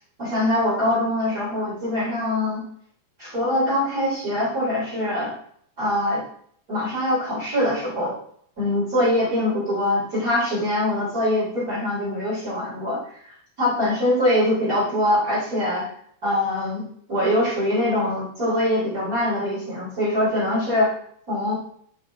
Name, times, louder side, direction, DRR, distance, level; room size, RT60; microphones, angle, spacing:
voice 1, 0.2-2.6 3.2-5.3 5.8-6.2 6.7-8.1 8.6-15.9 16.2-16.8 17.1-20.9 21.3-21.5, left 1 dB, 20° right, -8 dB, 3.1 m, -23 dB
8.2 x 6.0 x 3.4 m, 0.63 s
omnidirectional pair, 5.3 m